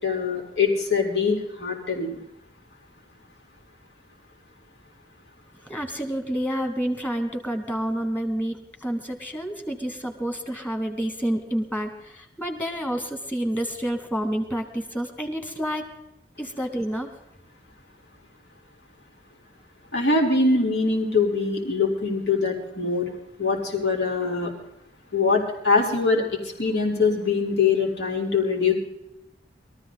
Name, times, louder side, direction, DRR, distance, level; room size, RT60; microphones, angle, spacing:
voice 1, 0.0-2.2 19.9-23.1 23.4-24.5 25.1-26.2 26.6-28.7, left 4 dB, 75° left, 0 dB, 4.1 m, -23 dB
voice 2, 5.7-15.8 16.4-17.1, equal, 10° left, 4 dB, 2.2 m, -29 dB
22.5 x 14.0 x 4.0 m, 0.86 s
head